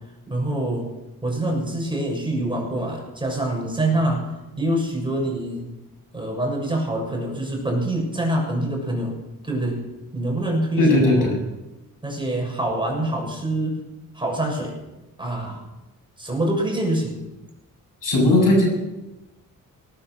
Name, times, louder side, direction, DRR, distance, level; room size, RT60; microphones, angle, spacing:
voice 1, 0.3-0.9 1.2-4.3 4.6-5.7 6.1-9.2 9.4-9.8 10.1-11.3 12.0-13.8 14.1-14.7 15.2-15.7 16.2-17.2, right 1 dB, 15° right, -1 dB, 6.9 m, -25 dB
voice 2, 10.8-11.4 18.0-18.7, left 1 dB, 65° left, 0 dB, 7.8 m, -17 dB
19.0 x 10.5 x 6.6 m, 1.0 s
cardioid pair, 75°, 35 cm